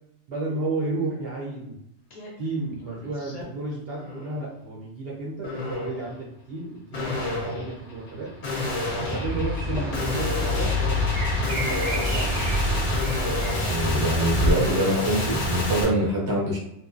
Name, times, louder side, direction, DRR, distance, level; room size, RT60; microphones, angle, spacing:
voice 1, 0.3-1.8 2.4-8.3 8.9-11.0 11.3-12.9 13.2-13.4, right 2 dB, 60° right, -4 dB, 0.7 m, -33 dB
sound 1, 2.1-2.3 2.7-3.4 3.9-4.4 5.4-6.0 6.9-15.8, left 1 dB, 50° left, 0.5 m, -29 dB
sound 2, 9.2-14.5, left 2 dB, 80° right, 1.0 m, -27 dB
voice 2, 13.7-16.6, right 1 dB, 25° right, -4 dB, 0.5 m, -24 dB
2.6 x 2.0 x 2.4 m, 0.79 s
omnidirectional pair, 1.3 m